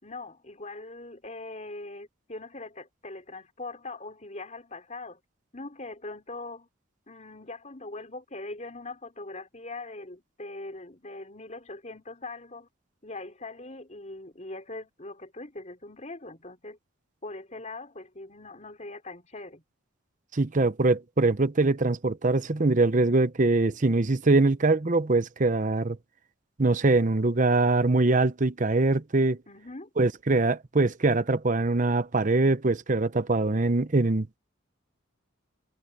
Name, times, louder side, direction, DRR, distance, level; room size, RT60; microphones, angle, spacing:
voice 1, 0.0-5.2 5.5-6.7 7.1-12.7 13.0-16.8 17.2-19.6 29.5-29.9, left 2 dB, 35° left, 4.5 m, -41 dB
voice 2, 20.3-26.0 26.6-29.4 30.0-34.3, right 2 dB, 40° right, 0.8 m, -23 dB
head